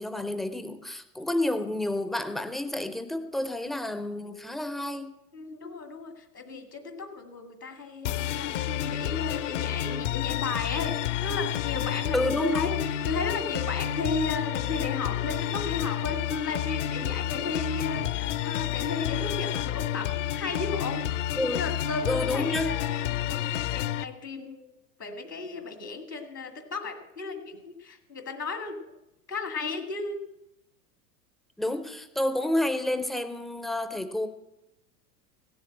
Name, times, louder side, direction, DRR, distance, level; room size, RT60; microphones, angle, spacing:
voice 1, 0.0-5.1 12.1-12.7 21.4-21.6 22.1-22.7 31.6-34.3, left 1 dB, ahead, 10 dB, 0.4 m, -29 dB
voice 2, 5.3-24.7 25.0-28.9 29.3-30.2, left 3 dB, 85° left, 6 dB, 2.1 m, -34 dB
sound 1, 8.0-24.0, left 12 dB, 50° left, 0.6 m, -30 dB
16.5 x 7.1 x 8.7 m, 0.92 s
figure-of-eight pair, 85°, 47 cm